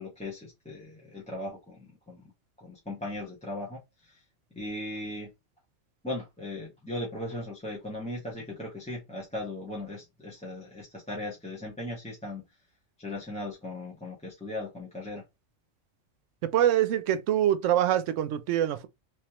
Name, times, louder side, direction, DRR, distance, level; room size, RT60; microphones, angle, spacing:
voice 1, 0.0-2.2 2.6-4.2 4.5-5.3 6.0-12.4 13.0-15.2, left 1 dB, 5° left, 1.2 m, -38 dB
voice 2, 16.4-18.9, right 11 dB, 80° right, 0.9 m, -25 dB
3.2 x 3.2 x 2.9 m
omnidirectional pair, 1.3 m